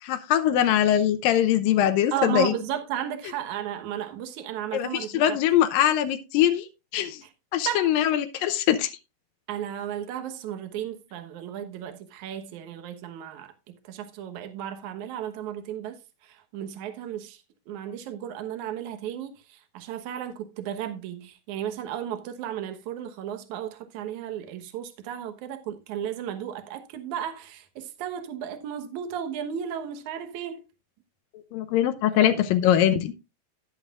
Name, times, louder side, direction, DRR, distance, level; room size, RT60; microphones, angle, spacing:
voice 1, 0.0-2.5 4.7-6.7 6.9-7.2 7.5-8.9 31.3-33.1, left 11 dB, 85° left, 2.5 m, -22 dB
voice 2, 2.1-5.4 7.7-7.9 9.5-17.4 17.7-30.6 32.2-32.4, right 10 dB, 65° right, 2.4 m, -34 dB
11.5 x 10.5 x 2.4 m
omnidirectional pair, 3.9 m